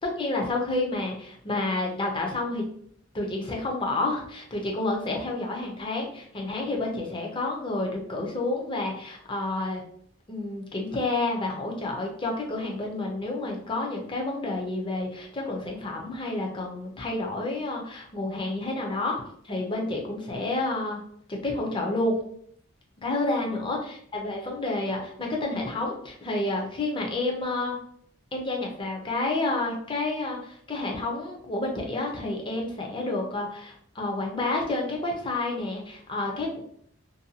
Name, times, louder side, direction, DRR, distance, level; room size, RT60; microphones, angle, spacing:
voice 1, 0.0-2.7 3.1-9.8 10.3-19.2 19.4-21.0 21.3-22.2 23.0-27.8 28.3-36.6, left 2 dB, 25° left, 0 dB, 0.6 m, -29 dB
2.6 x 2.2 x 2.7 m, 0.63 s
head